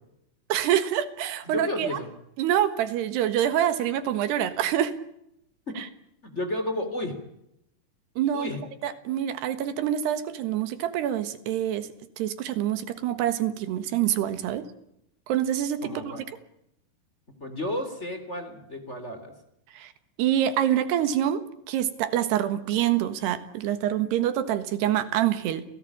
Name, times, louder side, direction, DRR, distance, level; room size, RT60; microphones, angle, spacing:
voice 1, 0.5-2.0 2.4-4.9 5.8-5.9 8.2-8.5 8.8-11.9 12.2-14.7 15.3-15.9 19.8-19.9 20.2-21.4 21.7-25.6, right 11 dB, 85° right, 12 dB, 3.6 m, -26 dB
voice 2, 1.4-2.1 5.7-5.8 6.2-7.2 8.3-8.6 15.8-16.2 17.4-19.3, left 1 dB, 20° left, 7 dB, 3.1 m, -32 dB
29.0 x 17.5 x 8.7 m, 0.81 s
omnidirectional pair, 4.6 m